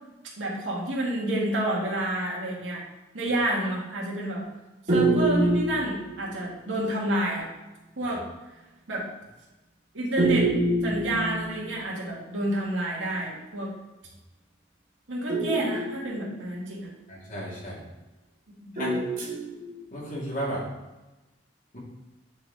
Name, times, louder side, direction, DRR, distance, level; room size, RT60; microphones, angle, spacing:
voice 1, 0.4-2.8 3.1-4.4 4.9-7.4 8.0-8.2 8.9-9.1 9.9-10.5 10.8-13.7 15.1-16.9 18.6-18.7, right 1 dB, 85° right, -4 dB, 2.2 m, -29 dB
sound 1, 4.9-6.6 10.2-12.0 15.3-16.8 18.8-20.0, right 2 dB, 45° right, 2.2 m, -26 dB
voice 2, 17.1-17.8 18.7-19.0 19.9-20.7 21.7-21.8, right 1 dB, 45° left, -6 dB, 2.7 m, -33 dB
8.5 x 4.4 x 4.1 m, 1.0 s
head